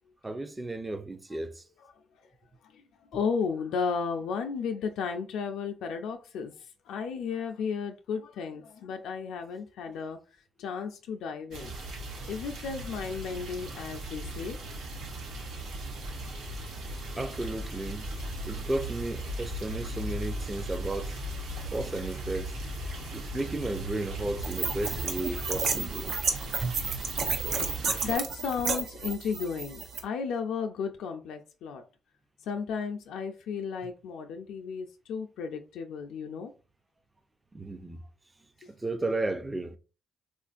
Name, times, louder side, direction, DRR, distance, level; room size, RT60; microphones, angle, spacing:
voice 1, 0.2-1.6 17.2-18.1 18.4-21.2 21.7-22.6 23.1-26.1 26.6-26.8 37.5-38.0 38.8-39.8, right 2 dB, 20° right, 0.5 m, -33 dB
voice 2, 3.1-6.5 6.9-10.2 10.6-11.7 12.3-14.6 18.1-18.3 22.9-23.0 27.8-31.8 32.4-36.5, left 6 dB, 85° left, 0.4 m, -34 dB
sound 1, 11.5-28.2, right 1 dB, 85° right, 1.0 m, -38 dB
sound 2, 24.4-30.0, right 5 dB, 70° right, 0.7 m, -32 dB
3.6 x 2.4 x 2.4 m
cardioid pair, 90°, 0 cm